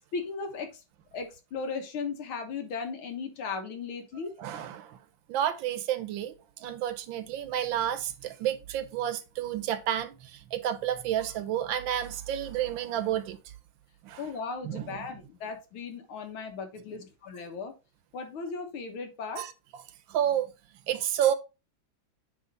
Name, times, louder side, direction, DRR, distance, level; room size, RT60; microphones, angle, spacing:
voice 1, 0.1-0.8 1.1-4.4 14.2-17.7 18.1-19.4, left 5 dB, 80° left, 2.1 m, -36 dB
voice 2, 4.4-5.0 5.3-13.4 14.0-14.2 14.6-15.0 19.4-19.5 20.1-20.5 20.9-21.3, right 10 dB, 75° right, 1.4 m, -30 dB
8.9 x 3.2 x 4.0 m
omnidirectional pair, 2.3 m